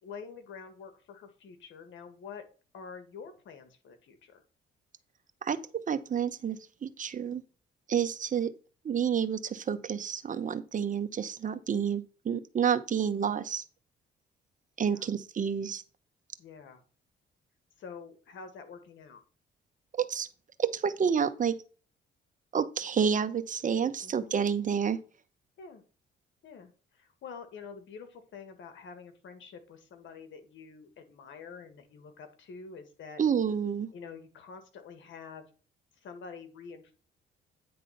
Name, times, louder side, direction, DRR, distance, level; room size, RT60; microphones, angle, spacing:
voice 1, 0.0-2.4 2.7-4.4 14.8-15.1 16.4-16.8 17.8-19.2 24.0-24.3 25.6-25.8 26.4-33.2 33.9-35.4 36.0-36.9, left 5 dB, 75° left, 1.8 m, -47 dB
voice 2, 5.4-7.4 7.9-8.5 8.8-13.6 14.8-15.8 20.0-20.3 20.6-21.6 22.5-25.0 33.2-33.9, right 7 dB, 40° right, 0.9 m, -29 dB
9.6 x 3.7 x 5.7 m
cardioid pair, 90°, 20 cm